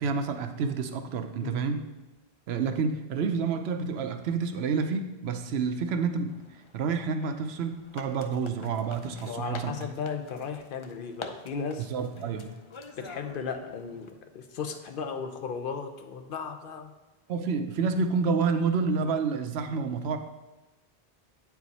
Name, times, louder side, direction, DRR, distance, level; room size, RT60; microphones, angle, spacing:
voice 1, 0.0-1.8 2.5-9.7 11.8-12.5 17.3-20.2, right 5 dB, 85° right, 8 dB, 0.9 m, -29 dB
sound 1, 6.3-14.1, left 4 dB, 45° left, 0.4 m, -47 dB
voice 2, 9.2-11.9 13.0-16.9, left 5 dB, 60° left, 6 dB, 0.8 m, -35 dB
8.4 x 4.8 x 4.0 m, 1.1 s
omnidirectional pair, 1.0 m